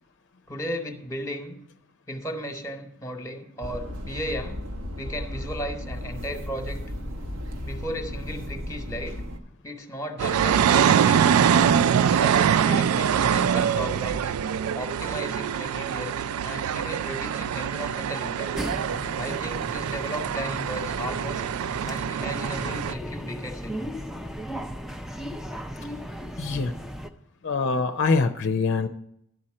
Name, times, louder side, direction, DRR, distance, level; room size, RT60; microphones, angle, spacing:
voice 1, 0.5-1.6 2.1-4.7 5.0-6.8 7.6-9.2 9.6-11.5 12.0-14.3 14.8-18.5 19.2-21.5 21.9-23.9, equal, 15° left, 5 dB, 1.1 m, -35 dB
sound 1, 3.6-9.4, left 1 dB, 65° right, 1.0 m, -35 dB
sound 2, 10.2-22.9, right 8 dB, 90° right, 0.3 m, -24 dB
sound 3, 18.5-27.1, equal, ahead, 0.4 m, -36 dB
voice 2, 26.4-26.7 27.4-28.9, left 4 dB, 60° left, 7 dB, 0.6 m, -24 dB
11.5 x 4.3 x 7.6 m, 0.74 s
head